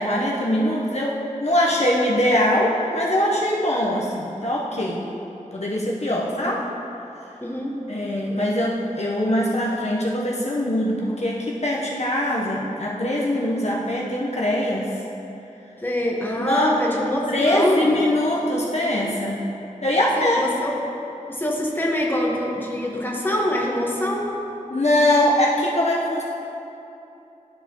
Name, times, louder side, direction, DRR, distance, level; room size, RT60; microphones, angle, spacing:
voice 1, 0.0-5.0 5.5-6.6 7.9-15.0 16.4-16.7 17.3-19.4 19.8-20.4 24.7-26.2, left 1 dB, 55° left, -4 dB, 0.8 m, -22 dB
voice 2, 6.3-6.6 7.4-7.9 15.8-18.0 20.2-20.7 21.3-24.3, left 1 dB, 15° left, -3 dB, 1.1 m, -25 dB
12.5 x 4.8 x 2.9 m, 2.9 s
wide cardioid pair, 45°, 14 cm